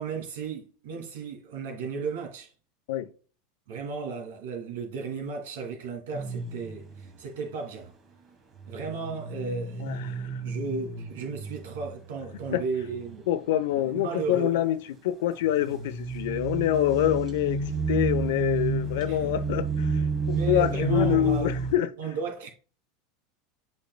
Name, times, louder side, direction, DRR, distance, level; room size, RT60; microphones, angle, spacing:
voice 1, 0.0-2.5 3.7-7.9 8.7-13.2 13.8-14.6 19.1-19.3 20.3-21.6 22.0-22.5, right 4 dB, 85° right, 2.6 m, -35 dB
sound 1, 6.1-7.1 8.6-13.1 13.5-14.0 15.5-21.7, right 4 dB, 30° right, 1.4 m, -31 dB
voice 2, 9.8-10.3 12.5-12.6 13.3-14.8 15.0-21.9, left 12 dB, 75° left, 0.8 m, -26 dB
8.3 x 5.4 x 2.2 m
supercardioid pair, 140°, 0 cm